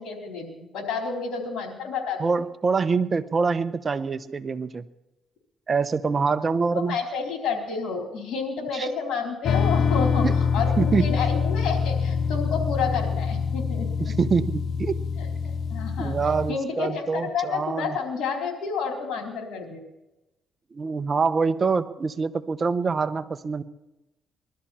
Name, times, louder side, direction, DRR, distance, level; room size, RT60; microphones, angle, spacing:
voice 1, 0.0-2.3 6.7-14.1 15.2-16.2 16.5-19.8, left 5 dB, 80° left, 2 dB, 4.0 m, -30 dB
voice 2, 2.2-4.8 5.7-7.0 8.7-8.9 10.2-10.4 10.8-11.2 14.0-15.0 16.0-18.0 20.7-23.6, right 5 dB, 35° right, 11 dB, 0.9 m, -25 dB
sound 1, 9.4-16.5, left 6 dB, 65° left, 0.6 m, -25 dB
20.5 x 12.5 x 4.3 m, 0.98 s
cardioid pair, 90°, 0 cm